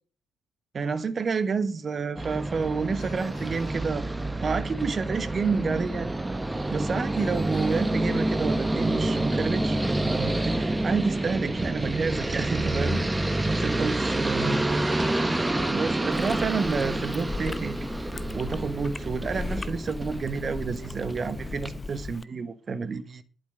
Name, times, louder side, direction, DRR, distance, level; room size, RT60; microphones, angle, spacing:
voice 1, 0.7-4.1 4.4-6.1 6.7-13.0 13.6-14.6 15.7-17.9 18.3-23.2, right 5 dB, 40° right, 1.2 m, -29 dB
sound 1, 2.2-21.8, right 2 dB, 15° right, 1.4 m, -28 dB
Ringtone, 3.0-4.7 7.2-8.8, left 4 dB, 50° left, 4.8 m, -52 dB
Chewing mastication, 16.1-22.2, left 3 dB, 20° left, 0.8 m, -37 dB
12.0 x 8.4 x 6.4 m
figure-of-eight pair, 45°, 0 cm